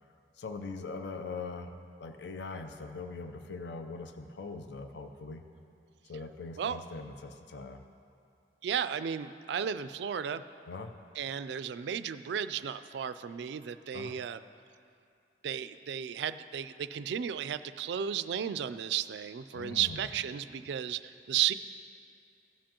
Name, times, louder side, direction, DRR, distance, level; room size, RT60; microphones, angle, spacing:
voice 1, 0.4-1.7 2.0-5.4 6.0-7.8 10.7-10.9 13.9-14.2 19.5-20.1, left 3 dB, 65° left, 7 dB, 0.5 m, -41 dB
voice 2, 8.6-10.4 11.2-14.4 15.4-21.5, right 9 dB, 65° right, 13 dB, 0.3 m, -34 dB
16.5 x 7.5 x 2.9 m, 2.5 s
head